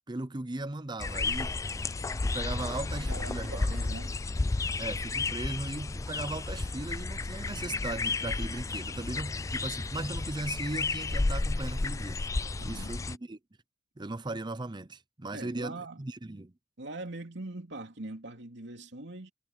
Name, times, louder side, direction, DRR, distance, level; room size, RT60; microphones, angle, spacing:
voice 1, 0.1-1.5 2.2-3.7 4.8-12.2 12.6-13.4 14.0-16.5, right 2 dB, 25° right, 0.7 m, -37 dB
sound 1, 1.0-13.2, left 3 dB, 15° left, 0.3 m, -32 dB
voice 2, 3.0-4.2 12.6-12.9 15.3-16.1 16.8-19.3, right 2 dB, 65° right, 3.1 m, -42 dB
head